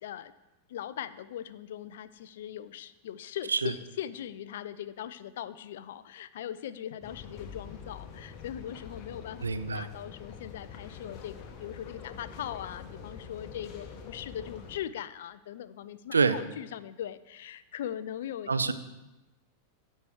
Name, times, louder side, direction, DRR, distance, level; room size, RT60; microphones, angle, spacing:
voice 1, 0.0-0.3 0.7-9.4 9.7-18.5, left 10 dB, 55° left, 15 dB, 0.4 m, -40 dB
sound 1, 7.0-14.8, left 6 dB, 35° left, 1.2 m, -45 dB
voice 2, 9.4-9.9 16.1-16.4 18.5-18.7, right 4 dB, 75° right, 12 dB, 0.5 m, -26 dB
13.5 x 4.5 x 4.9 m, 1.0 s
figure-of-eight pair, 90°, 0 cm